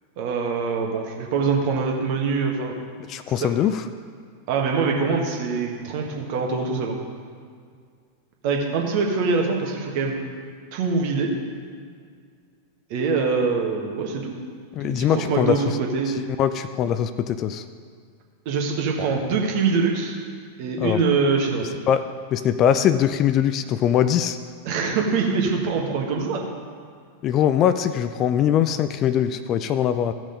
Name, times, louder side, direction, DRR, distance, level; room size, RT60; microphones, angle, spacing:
voice 1, 0.2-2.7 3.4-3.5 4.5-7.0 8.4-10.2 10.7-11.3 12.9-14.4 14.8-16.2 18.5-20.2 20.6-21.7 24.7-26.4, right 4 dB, 45° right, 1 dB, 1.7 m, -24 dB
voice 2, 3.1-3.8 14.8-15.6 16.1-17.6 20.8-21.0 21.9-22.0 22.3-24.4 27.2-30.1, left 9 dB, 35° left, 11 dB, 0.4 m, -21 dB
15.0 x 6.2 x 5.2 m, 2.1 s
figure-of-eight pair, 90°, 0 cm